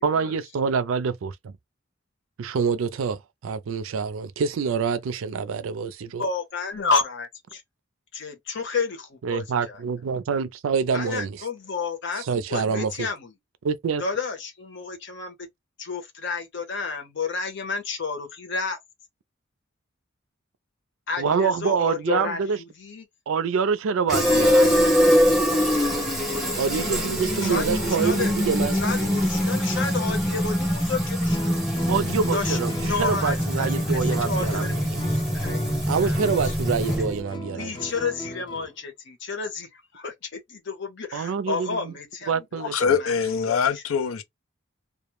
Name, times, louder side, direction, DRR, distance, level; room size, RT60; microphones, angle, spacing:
voice 1, 0.0-1.5 2.4-6.3 9.2-11.4 12.2-13.1 13.6-14.0 21.2-22.6 23.3-25.0 26.6-28.8 31.9-35.0 35.9-37.7 41.1-41.9 42.3-43.0, right 6 dB, 80° right, 0.4 m, -26 dB
voice 2, 6.2-7.6 8.1-9.8 10.9-13.3 14.0-15.3 15.8-18.8 21.1-23.0 27.4-28.3 28.7-31.9 32.3-36.3 37.5-43.1 43.5-43.6, left 4 dB, 65° left, 0.8 m, -31 dB
Fill (with liquid), 24.1-37.2, equal, 5° right, 0.8 m, -23 dB
Guitar, 31.3-38.7, equal, 25° left, 0.5 m, -37 dB
voice 3, 42.6-44.2, left 6 dB, 90° left, 0.4 m, -23 dB
2.2 x 2.0 x 3.0 m
head